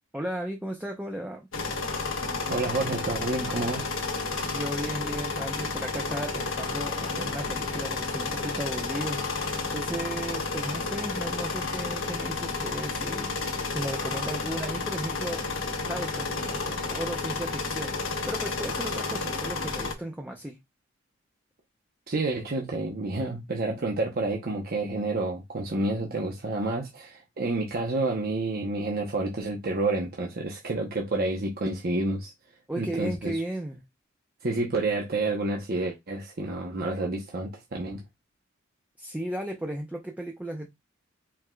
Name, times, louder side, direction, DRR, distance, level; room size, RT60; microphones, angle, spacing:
voice 1, 0.1-1.5 4.4-13.3 13.7-15.5 15.9-20.6 32.7-33.8 39.0-40.7, right 1 dB, 10° right, 0.5 m, -35 dB
sound 1, 1.5-19.9, left 3 dB, 75° left, 1.1 m, -31 dB
voice 2, 2.5-3.8 22.1-32.3 32.8-33.4 34.4-38.0, right 2 dB, 50° right, 0.8 m, -29 dB
4.6 x 3.6 x 2.3 m
head